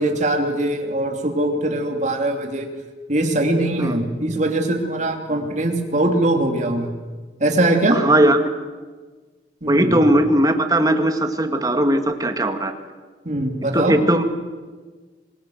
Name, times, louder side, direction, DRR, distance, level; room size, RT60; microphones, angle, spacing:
voice 1, 0.0-2.7 3.1-6.9 7.4-8.0 9.6-9.9 13.2-14.0, right 1 dB, 45° right, 3 dB, 3.0 m, -21 dB
voice 2, 7.9-8.4 9.7-12.7 13.7-14.2, right 1 dB, 20° right, 6 dB, 2.0 m, -18 dB
26.0 x 20.5 x 8.0 m, 1.4 s
head